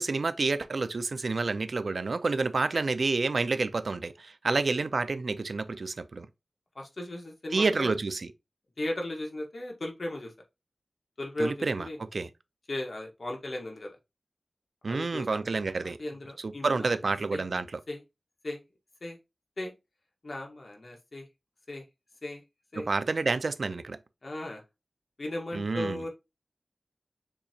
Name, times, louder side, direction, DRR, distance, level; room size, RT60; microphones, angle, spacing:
voice 1, 0.0-6.3 7.5-8.3 11.4-11.9 12.1-12.3 14.8-16.0 16.4-17.6 22.8-24.0 25.5-26.0, right 3 dB, 80° right, 0.4 m, -29 dB
voice 2, 6.7-7.9 8.8-10.3 11.2-12.0 12.7-14.0 14.9-15.4 15.8-17.4 17.9-18.0 18.4-18.6 19.0-19.2 19.6-19.7 20.2-21.3 21.7-21.8 22.2-22.4 22.7-22.9 24.2-24.6 25.2-26.1, left 1 dB, 65° left, 1.4 m, -36 dB
6.7 x 2.8 x 2.8 m
wide cardioid pair, 60°, 0 cm